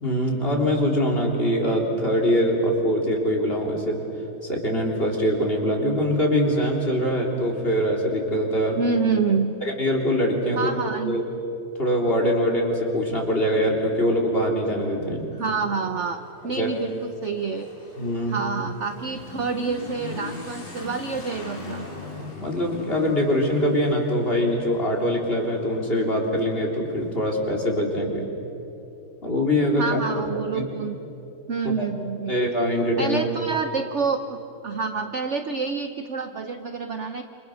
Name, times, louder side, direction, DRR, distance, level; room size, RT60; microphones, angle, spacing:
voice 1, 0.0-4.0 4.4-8.8 9.6-10.8 11.1-11.2 11.8-15.3 16.6-16.7 18.0-18.4 22.2-28.3 29.2-30.0 30.5-30.6 31.8-31.9 32.3-33.2, equal, 25° left, 0 dB, 3.7 m, -23 dB
voice 2, 8.8-9.5 10.5-11.2 15.4-17.7 18.3-21.9 29.8-31.0 31.5-32.4 33.0-34.2 34.6-37.2, right 5 dB, 60° right, 7 dB, 0.7 m, -27 dB
Motorcycle / Accelerating revving vroom, 15.2-27.5, left 3 dB, 50° left, 4.7 m, -41 dB
28.0 x 27.5 x 6.5 m, 2.9 s
omnidirectional pair, 2.4 m